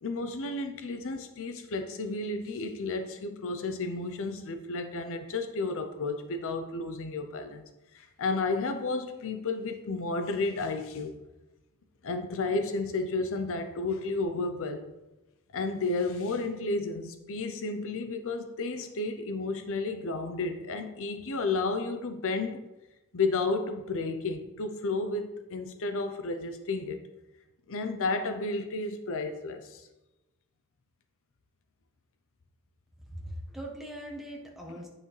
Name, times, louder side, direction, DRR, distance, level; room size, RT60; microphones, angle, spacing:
voice 1, 0.0-7.6 7.9-11.2 12.0-14.9 15.5-22.6 23.1-27.0 27.7-29.9, left 3 dB, 65° left, 0.6 m, -32 dB
voice 2, 33.1-34.9, equal, ahead, 1.3 m, -41 dB
9.7 x 5.8 x 3.2 m
head